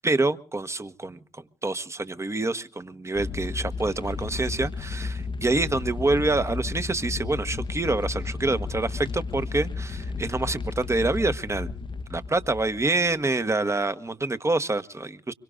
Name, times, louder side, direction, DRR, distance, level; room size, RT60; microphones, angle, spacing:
voice 1, 0.0-11.7 12.1-15.3, right 2 dB, 20° right, 11 dB, 1.2 m, -26 dB
sound 1, 3.1-13.2, left 4 dB, 40° left, 0.8 m, -33 dB
25.0 x 23.0 x 2.5 m, 0.39 s
hypercardioid pair, 45°, 12 cm